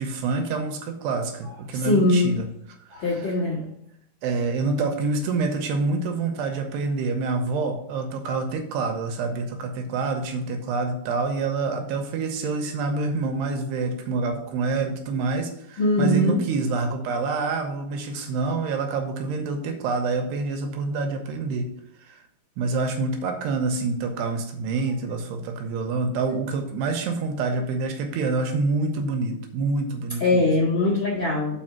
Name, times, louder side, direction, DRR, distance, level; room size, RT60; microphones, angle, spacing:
voice 1, 0.0-2.5 2.9-3.0 4.2-21.7 22.1-22.2 22.6-30.5, right 3 dB, 75° right, 5 dB, 2.7 m, -27 dB
voice 2, 1.7-2.4 2.9-3.6 15.8-16.4 30.2-31.6, left 2 dB, 55° left, -5 dB, 1.4 m, -21 dB
7.6 x 4.8 x 5.9 m, 0.76 s
omnidirectional pair, 5.2 m